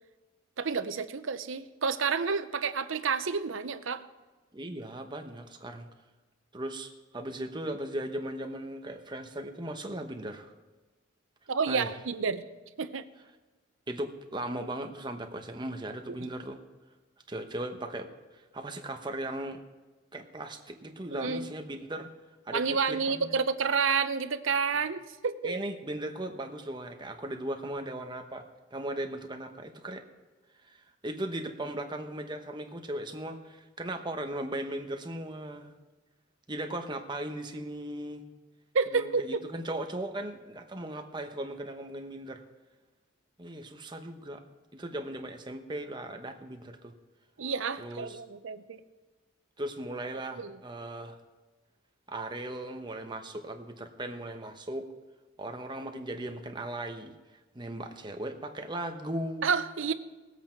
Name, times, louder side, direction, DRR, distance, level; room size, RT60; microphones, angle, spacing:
voice 1, 0.6-4.0 11.5-12.4 12.8-13.0 16.1-16.3 21.1-21.5 22.5-25.5 38.7-39.4 47.4-48.8 50.3-50.6 59.4-59.9, right 5 dB, 75° right, 12 dB, 0.7 m, -30 dB
voice 2, 4.5-5.9 6.5-10.5 11.7-11.9 13.9-16.6 17.3-19.6 20.1-22.1 22.5-23.4 25.4-30.0 30.6-35.7 36.5-38.2 38.9-42.4 43.4-44.4 44.7-46.9 47.8-48.2 49.6-51.2 52.1-54.9 55.4-57.1 57.5-59.5, right 1 dB, 20° right, 5 dB, 1.0 m, -37 dB
19.0 x 8.1 x 4.6 m, 1.2 s
head